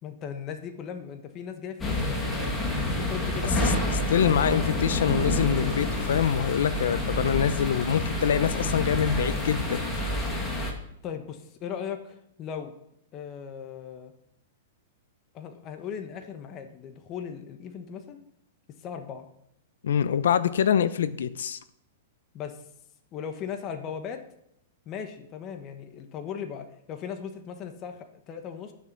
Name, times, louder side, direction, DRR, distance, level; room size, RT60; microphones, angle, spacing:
voice 1, 0.0-2.1 3.0-3.5 11.0-12.7 13.1-14.1 15.3-18.2 18.8-19.3 22.3-22.6 23.1-24.2 24.9-28.7, left 7 dB, 30° left, 6 dB, 1.2 m, -38 dB
sound 1, 1.8-10.7, left 1 dB, 15° left, 2.0 m, -28 dB
voice 2, 3.6-9.8 19.8-21.6, left 8 dB, 85° left, 14 dB, 0.8 m, -25 dB
10.5 x 7.0 x 6.0 m, 0.75 s
hypercardioid pair, 145°, 0 cm